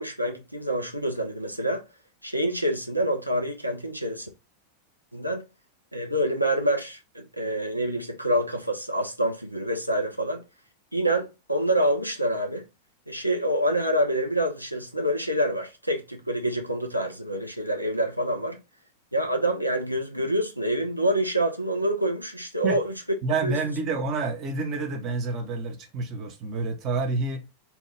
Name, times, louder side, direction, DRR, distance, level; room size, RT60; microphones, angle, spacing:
voice 1, 0.0-1.8 2.2-4.3 5.1-5.4 5.9-10.4 10.9-12.6 13.1-18.6 19.1-22.9 23.4-23.6, right 1 dB, 90° right, 0.5 m, -26 dB
voice 2, 23.2-27.4, right 3 dB, 35° right, 0.7 m, -28 dB
2.9 x 2.2 x 3.2 m
figure-of-eight pair, 90°, 0 cm